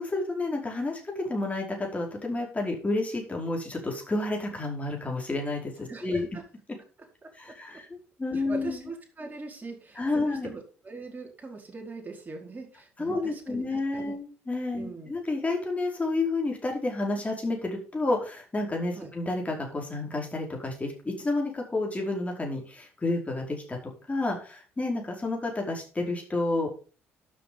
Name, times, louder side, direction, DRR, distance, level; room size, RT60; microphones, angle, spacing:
voice 1, 0.0-6.3 7.4-7.9 8.2-8.9 10.0-10.5 13.0-23.8 24.1-26.7, left 2 dB, 20° left, 0 dB, 5.0 m, -30 dB
voice 2, 5.9-6.4 7.2-7.3 8.3-14.1 14.8-15.1 18.9-19.1, right 3 dB, 25° right, 1 dB, 4.7 m, -41 dB
12.0 x 7.7 x 5.4 m, 0.38 s
figure-of-eight pair, 50°, 7 cm